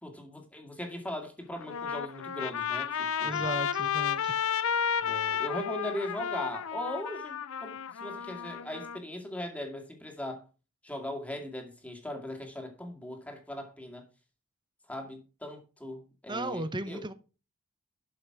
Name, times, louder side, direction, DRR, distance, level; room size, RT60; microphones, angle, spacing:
voice 1, 0.0-3.4 5.0-10.5 10.8-14.0 14.9-17.0, left 1 dB, 5° left, 2.1 m, -39 dB
Trumpet, 1.5-9.0, left 7 dB, 65° left, 0.6 m, -32 dB
voice 2, 3.2-4.4 16.3-17.1, right 2 dB, 20° right, 0.9 m, -35 dB
12.0 x 5.7 x 4.8 m
head